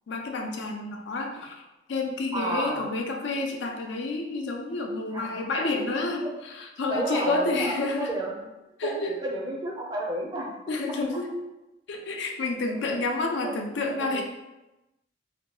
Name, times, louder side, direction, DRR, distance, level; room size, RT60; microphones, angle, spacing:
voice 1, 0.1-1.6 1.9-8.1 8.8-9.1 10.7-11.4 11.9-14.2, left 2 dB, 75° left, 2 dB, 0.4 m, -29 dB
voice 2, 2.3-2.8 5.1-5.6 6.2-6.3 6.9-8.3 8.8-10.5 13.4-13.5 14.0-14.2, right 2 dB, 20° right, -1 dB, 0.4 m, -31 dB
2.8 x 2.2 x 2.9 m, 1.0 s
head